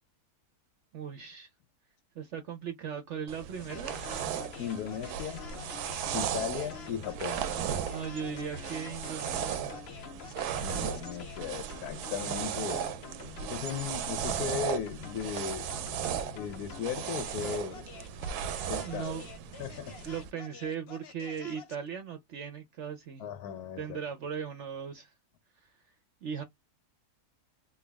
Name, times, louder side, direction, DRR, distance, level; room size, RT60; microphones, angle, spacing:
voice 1, 0.9-1.5 2.1-4.1 7.8-9.7 18.8-19.3 19.6-19.7 20.0-23.3 23.8-25.1 26.2-26.4, right 7 dB, 60° right, 0.8 m, -38 dB
sound 1, 3.3-20.3, right 9 dB, 80° right, 1.1 m, -36 dB
sound 2, 3.6-21.9, left 8 dB, 60° left, 0.7 m, -47 dB
voice 2, 4.6-5.5 6.1-7.4 10.6-13.0 13.4-15.7 16.3-17.9 18.7-19.2 19.6-20.0 23.2-24.0, left 9 dB, 80° left, 1.1 m, -37 dB
3.4 x 2.3 x 3.3 m
omnidirectional pair, 1.6 m